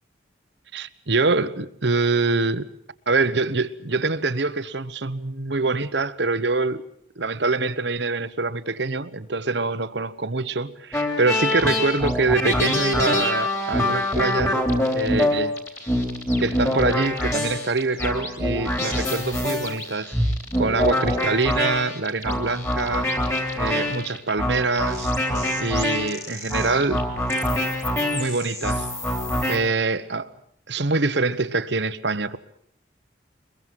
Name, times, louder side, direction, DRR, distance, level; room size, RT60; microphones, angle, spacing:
voice 1, 0.7-2.7 3.1-6.8 7.2-14.6 14.9-15.5 16.4-20.1 20.6-23.2 23.6-25.1 25.6-27.1 28.1-28.9 29.5-30.3 30.7-32.4, right 3 dB, 65° right, 1.2 m, -24 dB
sound 1, 10.9-29.6, left 1 dB, 15° left, 3.4 m, -25 dB
23.5 x 22.5 x 7.7 m
head